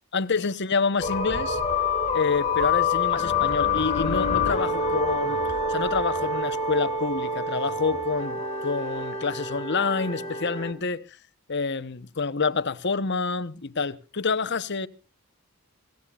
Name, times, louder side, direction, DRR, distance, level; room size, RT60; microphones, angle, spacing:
voice 1, 0.1-1.6 2.1-5.4 5.7-11.2 11.5-14.9, left 4 dB, 55° left, 0.9 m, -27 dB
sound 1, 1.0-10.7, left 3 dB, 30° left, 2.4 m, -27 dB
26.5 x 15.5 x 2.4 m
head